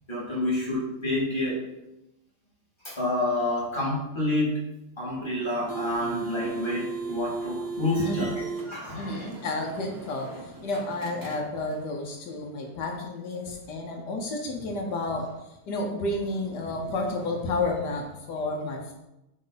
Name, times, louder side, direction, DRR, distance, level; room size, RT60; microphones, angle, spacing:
voice 1, 0.1-1.6 2.8-4.6 5.0-8.3 8.7-9.3, left 1 dB, 15° left, -6 dB, 2.1 m, -28 dB
sound 1, 5.4-11.9, right 4 dB, 25° right, 0.4 m, -36 dB
voice 2, 8.9-18.9, left 2 dB, 80° left, 1 dB, 1.5 m, -31 dB
8.9 x 3.2 x 4.0 m, 0.93 s
omnidirectional pair, 1.7 m